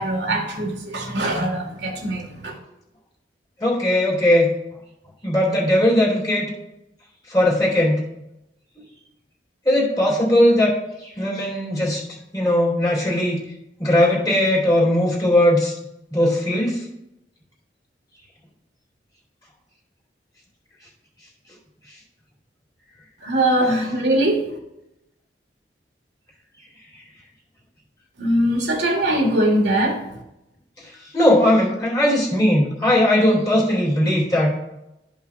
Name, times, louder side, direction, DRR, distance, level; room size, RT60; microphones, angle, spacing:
voice 1, 0.0-2.6 23.2-24.4 28.2-30.0, right 1 dB, 80° right, 0 dB, 1.7 m, -21 dB
voice 2, 3.6-4.5 5.2-6.5 7.3-8.0 9.6-10.8 11.2-12.0 12.3-13.4 13.8-15.7 16.1-16.8 31.1-34.5, left 1 dB, 20° left, -4 dB, 2.5 m, -18 dB
12.5 x 5.6 x 2.4 m, 0.89 s
head